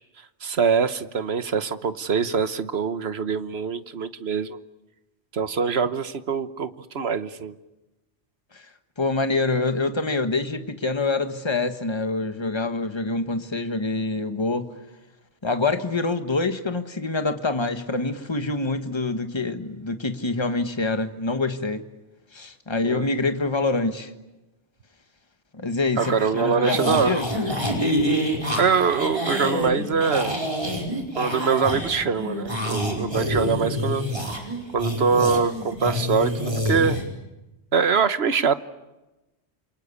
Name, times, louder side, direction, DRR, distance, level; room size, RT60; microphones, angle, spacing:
voice 1, 0.4-4.6 5.3-7.5 22.8-23.1 26.0-27.2 28.6-30.4 31.2-34.0 34.7-37.0 37.7-38.5, right 5 dB, 65° right, 1.4 m, -23 dB
voice 2, 9.0-14.7 15.4-21.8 22.3-24.1 25.5-27.3, left 3 dB, 25° left, 1.5 m, -26 dB
sound 1, 26.0-37.0, equal, 30° right, 4.9 m, -27 dB
28.5 x 23.5 x 8.4 m
omnidirectional pair, 1.2 m